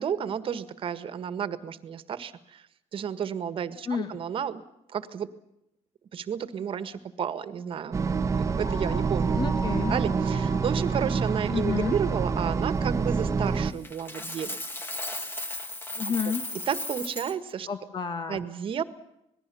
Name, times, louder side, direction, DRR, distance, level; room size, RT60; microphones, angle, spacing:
voice 1, 0.0-2.7 2.9-4.6 4.9-5.3 6.1-9.4 9.9-14.6 16.7-17.7 18.3-18.8, right 8 dB, 45° right, 12 dB, 1.7 m, -32 dB
voice 2, 3.9-4.2 9.3-10.0 11.5-11.9 16.0-16.4 17.7-18.4, left 6 dB, 35° left, 8 dB, 2.0 m, -30 dB
sound 1, 7.9-13.7, right 5 dB, 25° right, 1.1 m, -27 dB
sound 2, 8.5-13.2, right 1 dB, 60° left, 5.8 m, -42 dB
Coin (dropping), 13.8-17.3, left 1 dB, 15° left, 2.4 m, -35 dB
27.0 x 20.0 x 7.1 m, 0.82 s
cardioid pair, 125°, 12 cm